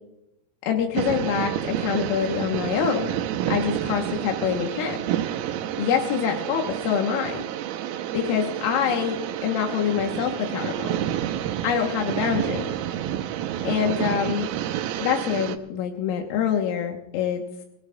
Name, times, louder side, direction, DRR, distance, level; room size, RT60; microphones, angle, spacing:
voice 1, 0.7-3.1 3.5-5.0 5.8-7.5 8.1-11.0 11.6-12.7 13.6-14.5 15.0-17.4, left 8 dB, 85° left, 2 dB, 3.8 m, -25 dB
sound 1, 1.0-15.6, right 11 dB, 90° right, 3.7 m, -29 dB
25.5 x 18.0 x 2.4 m, 0.80 s
omnidirectional pair, 5.9 m